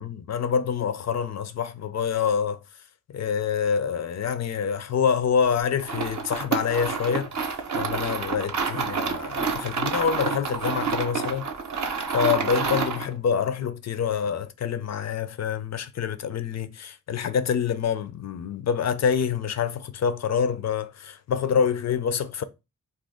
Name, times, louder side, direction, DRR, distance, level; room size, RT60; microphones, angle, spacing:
voice 1, 0.0-2.6 3.1-11.5 12.1-22.4, left 7 dB, 50° left, 0.4 m, -26 dB
sound 1, 5.8-13.1, right 5 dB, 50° right, 0.6 m, -28 dB
2.5 x 2.3 x 3.5 m
cardioid pair, 90°, 35 cm